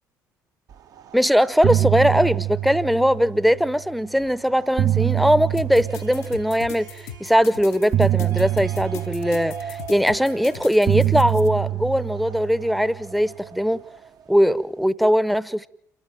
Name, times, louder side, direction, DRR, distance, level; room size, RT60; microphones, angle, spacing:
sound 1, 1.0-1.2 1.5-3.8 4.5-6.9 7.9-10.4 10.9-13.4, right 13 dB, 40° right, 0.8 m, -25 dB
voice 1, 1.1-13.8 14.3-15.7, equal, ahead, 0.8 m, -20 dB
sound 2, 5.6-11.5, left 11 dB, 65° left, 0.9 m, -38 dB
Harp, 5.8-13.0, right 3 dB, 90° right, 5.4 m, -50 dB
28.5 x 14.0 x 9.1 m
figure-of-eight pair, 55°, 9 cm